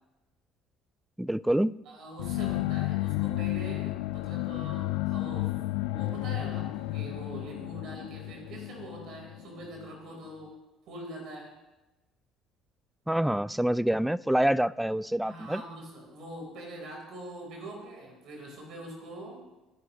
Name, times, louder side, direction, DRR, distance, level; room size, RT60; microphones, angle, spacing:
voice 1, 1.2-1.7 13.1-15.6, right 1 dB, 5° right, 0.4 m, -26 dB
voice 2, 1.9-5.6 5.9-10.6 10.9-11.5 15.2-19.4, right 1 dB, 55° right, 4.1 m, -43 dB
sound 1, 2.2-9.9, left 18 dB, 70° left, 0.4 m, -32 dB
29.0 x 10.0 x 3.1 m
figure-of-eight pair, 55°, 0 cm